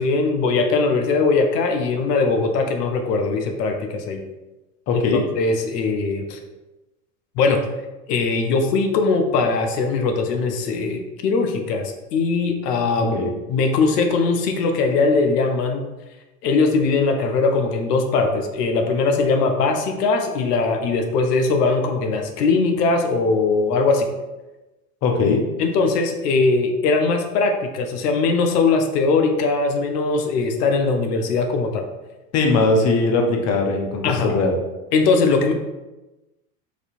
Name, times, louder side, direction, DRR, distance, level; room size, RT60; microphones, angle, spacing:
voice 1, 0.0-4.2 4.9-5.0 5.3-6.4 7.4-7.6 8.1-13.2 13.5-15.9 16.4-24.1 25.2-25.3 25.6-31.8 34.0-34.4 34.9-35.5, left 4 dB, 80° left, 4 dB, 0.7 m, -20 dB
voice 2, 4.9-5.2 13.0-13.3 25.0-25.4 32.3-34.5, left 3 dB, 35° left, 1 dB, 0.6 m, -20 dB
4.2 x 2.7 x 2.5 m, 1.1 s
hypercardioid pair, 100°, 47 cm